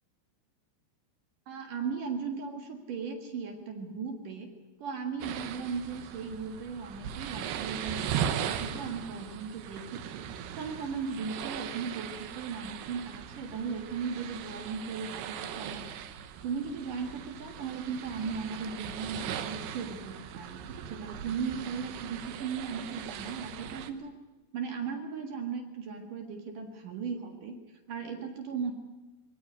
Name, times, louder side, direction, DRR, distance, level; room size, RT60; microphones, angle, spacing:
voice 1, 1.5-4.5 4.8-10.2 10.6-16.0 16.4-24.1 24.5-27.6 27.9-28.7, right 5 dB, 55° right, 5 dB, 3.0 m, -37 dB
sound 1, 5.2-23.9, right 9 dB, 75° right, 3.0 m, -39 dB
20.0 x 18.5 x 9.8 m, 1.1 s
omnidirectional pair, 5.1 m